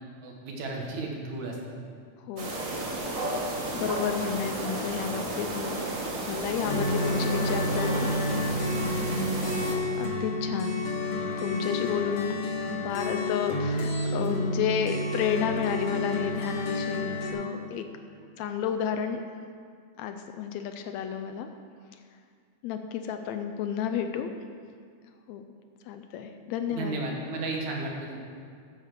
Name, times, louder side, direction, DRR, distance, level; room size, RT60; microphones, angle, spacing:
voice 1, 0.2-1.6 26.7-28.2, right 2 dB, 75° right, 0 dB, 2.8 m, -33 dB
sound 1, 2.4-9.7, right 2 dB, 50° right, 0.9 m, -33 dB
voice 2, 3.7-5.8 6.3-8.6 10.0-10.8 11.4-12.4 12.8-17.9 18.2-19.2 20.0-21.5 22.6-24.3 25.3-25.4 25.9-27.0, left 8 dB, 80° left, 6 dB, 1.7 m, -31 dB
sound 2, 6.7-17.3, left 1 dB, 60° left, 2.3 m, -30 dB
9.0 x 8.0 x 6.6 m, 2.2 s
omnidirectional pair, 3.4 m